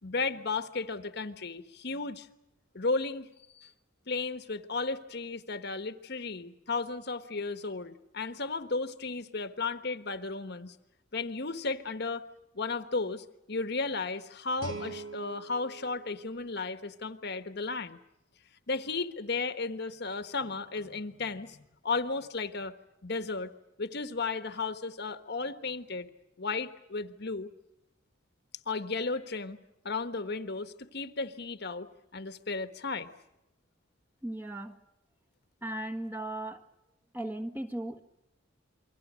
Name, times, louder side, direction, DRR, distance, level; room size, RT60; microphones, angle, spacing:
voice 1, 0.0-2.3 2.7-3.3 3.6-3.7 4.1-10.7 11.1-12.2 12.5-18.0 18.7-21.6 21.8-22.7 23.0-23.5 23.8-26.1 26.4-27.5 28.7-29.6 29.8-31.9 32.1-33.1, left 3 dB, 55° left, 10 dB, 1.3 m, -34 dB
Guitar, 14.6-17.4, right 4 dB, 75° right, 4.0 m, -44 dB
voice 2, 34.2-34.8 35.6-36.7 37.1-38.0, right 1 dB, 10° right, 5 dB, 1.5 m, -37 dB
29.0 x 23.5 x 6.4 m, 0.88 s
head